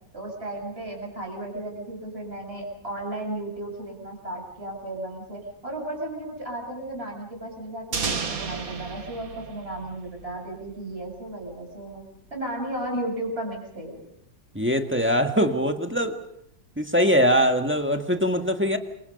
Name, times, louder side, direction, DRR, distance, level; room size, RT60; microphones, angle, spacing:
voice 1, 0.1-12.0 12.3-14.0, right 1 dB, 30° right, 1 dB, 7.5 m, -34 dB
sound 1, 7.9-10.7, right 4 dB, 90° right, 3.0 m, -32 dB
voice 2, 14.5-16.2 16.8-18.8, equal, 5° right, 5 dB, 1.5 m, -22 dB
28.5 x 25.0 x 5.4 m, 0.75 s
omnidirectional pair, 2.0 m